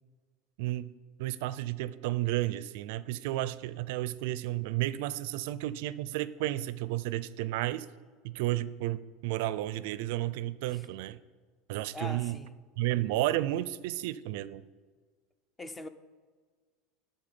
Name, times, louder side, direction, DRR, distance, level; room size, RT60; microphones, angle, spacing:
voice 1, 0.6-0.9 1.2-7.9 8.2-11.2 11.7-12.4 12.8-14.6, right 15 dB, 70° right, 0.4 m, -32 dB
voice 2, 11.9-12.6 15.6-15.9, left 2 dB, 10° left, 0.5 m, -42 dB
11.5 x 3.8 x 6.9 m
supercardioid pair, 155°, 0 cm